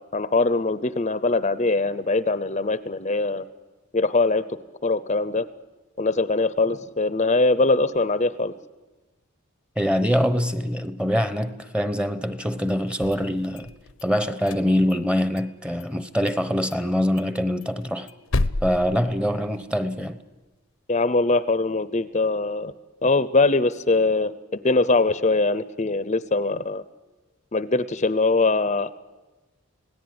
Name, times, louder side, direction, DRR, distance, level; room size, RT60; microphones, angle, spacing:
voice 1, 0.0-3.4 3.9-4.4 4.8-5.5 6.0-8.5 20.9-22.7 23.0-26.8 27.5-28.9, left 3 dB, 35° left, 0.7 m, -22 dB
voice 2, 9.8-13.7 14.0-18.1 18.6-20.2, equal, 5° right, 1.0 m, -24 dB
sound 1, 12.9-14.0 14.4-15.5 15.8-15.9 16.3-16.4 16.7-16.8 17.2-19.8, left 2 dB, 75° left, 0.9 m, -31 dB
26.0 x 17.5 x 9.6 m
head